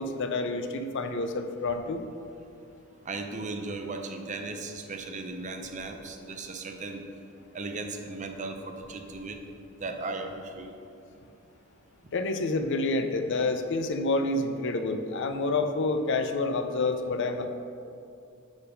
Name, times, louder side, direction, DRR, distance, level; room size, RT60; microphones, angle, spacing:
voice 1, 0.0-2.0 12.1-17.5, left 3 dB, 60° left, 7 dB, 0.5 m, -28 dB
voice 2, 2.9-7.1 7.5-9.4 9.8-10.7, right 3 dB, 35° right, 5 dB, 0.6 m, -37 dB
8.8 x 3.5 x 5.2 m, 2.6 s
head